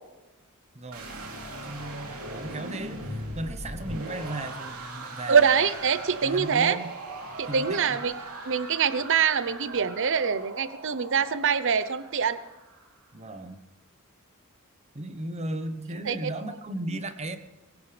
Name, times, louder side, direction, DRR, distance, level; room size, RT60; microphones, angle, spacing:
voice 1, 0.7-1.1 1.6-5.5 6.2-6.9 7.5-8.0 13.1-13.6 14.9-17.4, right 1 dB, 30° right, 10 dB, 1.0 m, -36 dB
sound 1, 0.9-13.0, right 1 dB, 75° right, 3.2 m, -39 dB
voice 2, 5.3-6.8 7.4-8.1 8.4-12.4 16.1-16.3, right 6 dB, 60° right, 14 dB, 0.8 m, -24 dB
22.5 x 15.5 x 3.4 m, 1.1 s
head